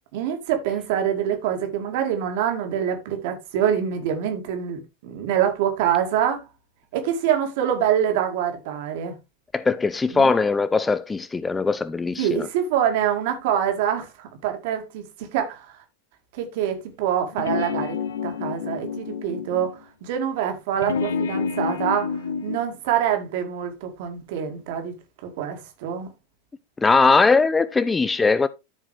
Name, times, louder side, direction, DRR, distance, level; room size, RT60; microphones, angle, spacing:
voice 1, 0.1-6.4 6.9-9.1 10.1-10.3 12.2-15.8 16.4-18.0 18.2-24.9 25.2-26.1, right 9 dB, 50° right, 2.2 m, -25 dB
voice 2, 9.5-12.5 26.8-28.5, left 4 dB, 10° left, 0.4 m, -20 dB
sound 1, 17.3-19.8 20.8-22.6, left 6 dB, 65° left, 0.7 m, -28 dB
13.5 x 5.0 x 3.2 m
figure-of-eight pair, 90°, 0 cm